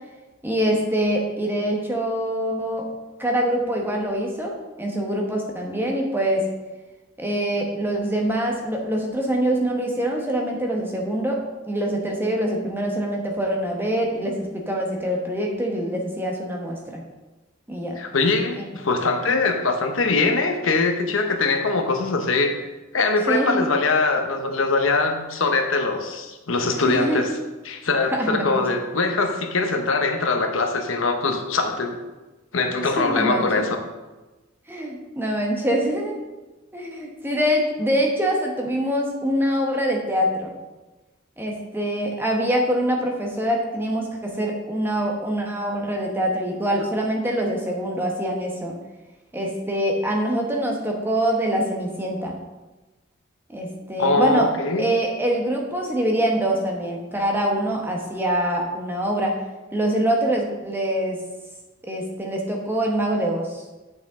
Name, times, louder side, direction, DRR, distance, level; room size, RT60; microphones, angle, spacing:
voice 1, 0.4-2.9 3.2-6.5 7.2-17.0 17.7-18.0 18.6-18.7 23.3-23.7 26.8-27.2 28.1-28.6 32.8-33.7 34.7-36.2 36.7-40.5 41.4-48.7 49.3-52.3 53.5-54.5 54.8-59.3 59.7-61.2 61.8-63.6, right 1 dB, 10° right, 0 dB, 1.1 m, -24 dB
voice 2, 18.0-22.7 22.9-27.3 27.7-31.9 32.5-33.8 54.0-54.9, left 3 dB, 70° left, 5 dB, 0.9 m, -22 dB
8.2 x 6.6 x 3.7 m, 1.1 s
head